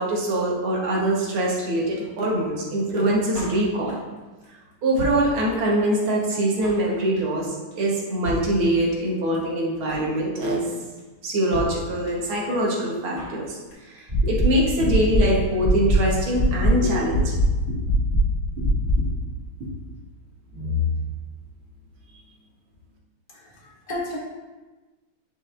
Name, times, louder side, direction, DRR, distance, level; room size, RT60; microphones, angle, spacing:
voice 1, 0.0-4.0 4.8-10.6 11.2-13.6 13.9-17.3 20.5-20.9, right 1 dB, 70° right, -3 dB, 2.1 m, -23 dB
Drum kit, 3.3-4.2 4.4-4.5 4.7-5.8 6.1-6.2 6.3-6.9 7.2-7.4 7.7-7.8 8.0-8.1 8.2-9.1 9.3-9.4 9.6-10.2 10.4-10.7 11.0-11.1 11.3-11.4 11.5-12.4 12.6-12.7 12.9-13.4 13.7-14.0 14.2-14.3 14.5-14.6 14.8-15.6 15.9-16.0 16.2-16.3, left 2 dB, 65° left, 2.6 m, -34 dB
sound 1, 14.1-14.4 14.8-15.2 15.6-15.9 16.3-16.7 17.1-17.4 17.8-18.2 18.6-18.9, left 3 dB, 20° right, 1.8 m, -23 dB
voice 2, 23.3-24.2, left 1 dB, 25° left, -4 dB, 1.1 m, -33 dB
9.2 x 4.8 x 2.5 m, 1.2 s
omnidirectional pair, 2.4 m